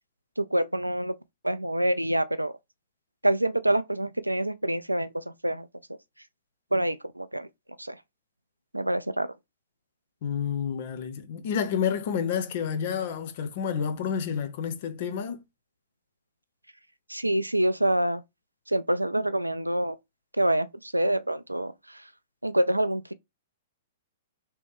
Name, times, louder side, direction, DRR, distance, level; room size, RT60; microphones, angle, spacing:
voice 1, 0.4-1.1 1.4-2.5 3.2-5.7 6.7-7.5 7.8-8.0 8.7-9.3 17.1-18.2 18.7-20.0 20.3-22.1 22.4-23.1, right 1 dB, 85° right, 0.3 m, -26 dB
voice 2, 10.2-15.4, left 7 dB, 45° left, 0.7 m, -29 dB
3.1 x 2.9 x 3.4 m
figure-of-eight pair, 110°, 0 cm